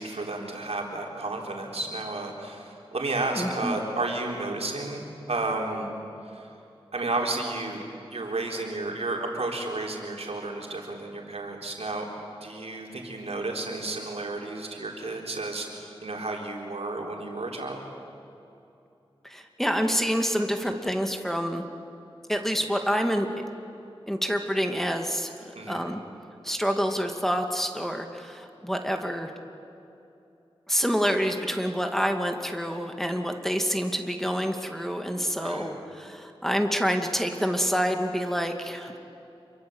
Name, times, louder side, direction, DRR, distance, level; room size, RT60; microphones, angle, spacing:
voice 1, 0.0-5.9 6.3-6.5 6.9-7.8 8.1-12.1 12.4-17.8 25.6-25.8 35.4-35.7, right 2 dB, 85° right, 0 dB, 4.0 m, -32 dB
voice 2, 3.3-3.8 19.2-21.6 22.3-23.3 24.1-26.0 26.4-29.3 30.7-38.9, equal, 5° left, 4 dB, 2.4 m, -27 dB
27.5 x 24.0 x 8.2 m, 2.8 s
wide cardioid pair, 50°, 10 cm